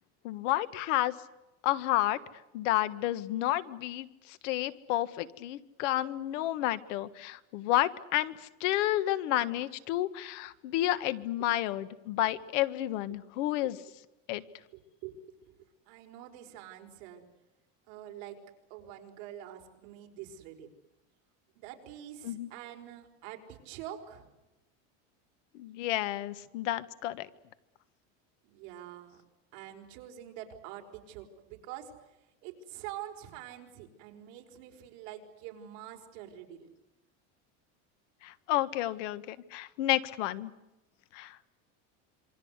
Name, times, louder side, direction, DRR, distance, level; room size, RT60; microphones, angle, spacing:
voice 1, 0.2-1.1 1.6-2.2 2.5-13.8 14.3-14.4 22.2-22.5 25.5-27.3 38.2-40.5 41.1-41.4, left 15 dB, 75° left, 13 dB, 1.6 m, -31 dB
voice 2, 14.7-15.2 15.5-15.6 15.9-17.3 17.9-18.4 18.7-20.7 21.6-24.3 28.4-29.2 29.5-31.9 32.4-36.7, right 11 dB, 60° right, 3 dB, 5.0 m, -46 dB
27.5 x 24.0 x 8.2 m, 0.99 s
cardioid pair, 175°, 37 cm